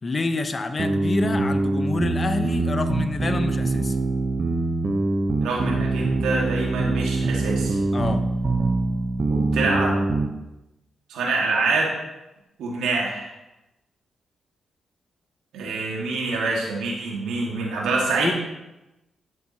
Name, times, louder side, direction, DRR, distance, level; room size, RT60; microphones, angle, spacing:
voice 1, 0.0-4.0 7.9-8.2 18.2-18.3, left 3 dB, 40° left, 8 dB, 0.9 m, -27 dB
sound 1, 0.8-10.3, right 2 dB, 45° right, 0.9 m, -24 dB
voice 2, 5.4-7.8 9.3-9.9 11.1-11.9 12.6-13.3 15.5-18.3, right 3 dB, 90° right, -3 dB, 1.8 m, -25 dB
11.0 x 7.2 x 2.9 m, 0.97 s
cardioid pair, 60°, 0 cm